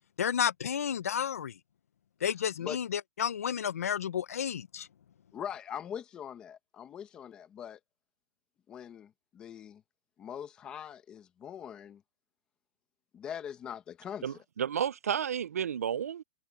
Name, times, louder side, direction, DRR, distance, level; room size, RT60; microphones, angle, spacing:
voice 1, 0.2-1.5 2.2-4.9, left 8 dB, 80° left, 0.7 m, -31 dB
voice 2, 5.3-7.8 8.7-9.8 10.2-12.0 13.1-14.3, left 9 dB, 10° left, 1.1 m, -42 dB
voice 3, 14.2-16.2, right 8 dB, 85° right, 0.6 m, -32 dB
hypercardioid pair, 180°, 8 cm